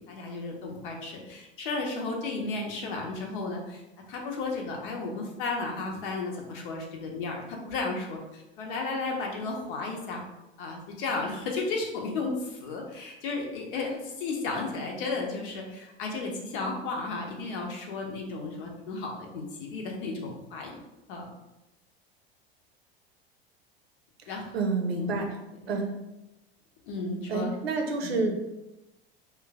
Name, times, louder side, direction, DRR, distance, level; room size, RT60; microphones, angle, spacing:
voice 1, 0.0-3.8 4.1-10.2 10.6-20.8 21.1-21.3 24.3-24.5 24.9-25.2 25.6-25.7 26.9-27.5 28.0-28.3, left 3 dB, 55° left, 1 dB, 0.8 m, -34 dB
voice 2, 24.3-25.4 25.7-25.9 27.3-28.3, right 3 dB, 70° right, 2 dB, 0.6 m, -29 dB
3.1 x 2.2 x 3.4 m, 1.0 s
figure-of-eight pair, 80°, 32 cm